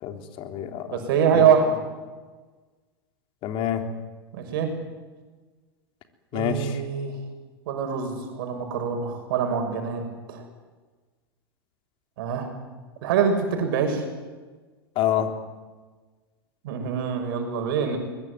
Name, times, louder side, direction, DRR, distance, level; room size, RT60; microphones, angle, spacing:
voice 1, 0.0-1.0 1.3-1.4 3.4-3.8 6.3-6.8 14.9-15.4, left 10 dB, 45° left, 6 dB, 3.5 m, -27 dB
voice 2, 0.9-1.8 4.3-4.7 6.3-7.1 7.7-10.0 10.3-10.4 12.2-12.5 13.0-14.0 16.6-18.0, right 7 dB, 65° right, 5 dB, 6.5 m, -24 dB
22.5 x 21.5 x 9.7 m, 1.3 s
hypercardioid pair, 95°, 13 cm